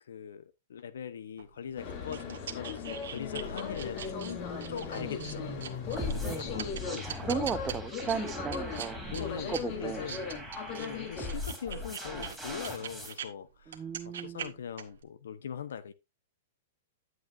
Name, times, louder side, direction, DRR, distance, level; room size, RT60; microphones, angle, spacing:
voice 1, 0.1-7.6 8.0-8.3 9.1-10.3 10.8-15.9, left 8 dB, 85° left, 0.9 m, -42 dB
sound 1, 1.4-13.3 13.6-15.0, right 8 dB, 80° right, 1.4 m, -43 dB
sound 2, 1.8-11.4, left 6 dB, 45° left, 3.2 m, -38 dB
sound 3, 6.0-13.1, left 1 dB, ahead, 3.5 m, -40 dB
voice 2, 6.2-6.5 6.9-9.0 9.5-10.0 13.7-14.5, right 6 dB, 20° right, 0.6 m, -36 dB
10.5 x 7.9 x 2.6 m
hypercardioid pair, 135°, 0 cm